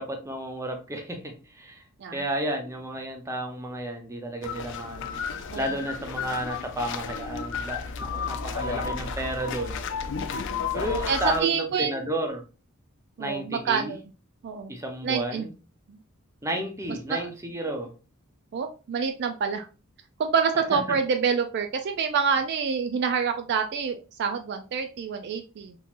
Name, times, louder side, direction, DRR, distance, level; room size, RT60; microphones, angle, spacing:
voice 1, 0.0-1.8 2.1-5.2 5.5-9.8 10.7-12.5 13.2-14.0 14.7-15.5 16.4-17.9 20.7-21.0, right 1 dB, 15° right, 0.6 m, -32 dB
sound 1, 4.4-11.4, left 5 dB, 60° left, 0.4 m, -32 dB
voice 2, 11.1-11.9 13.2-14.0 14.4-14.7 15.0-15.5 17.1-17.3 18.5-19.7 20.2-25.7, right 6 dB, 55° right, 0.3 m, -27 dB
3.6 x 2.9 x 2.5 m
head